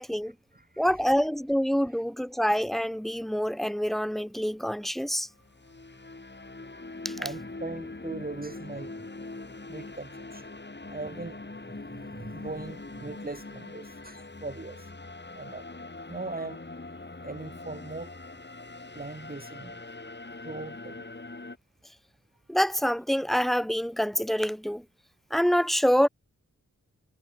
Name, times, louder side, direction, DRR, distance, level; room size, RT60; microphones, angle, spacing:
voice 1, 0.0-0.3 0.8-5.3 7.0-7.1 22.5-24.8 25.3-26.1, equal, ahead, 1.7 m, -26 dB
voice 2, 0.5-1.2 7.2-8.9 9.7-10.5 10.9-11.4 11.6-14.9 15.3-15.6 16.1-16.6 17.2-18.1 18.9-19.8 20.4-21.0, right 3 dB, 30° right, 2.2 m, -40 dB
sound 1, 5.3-21.6, left 2 dB, 35° left, 5.1 m, -42 dB
cardioid pair, 60°, 31 cm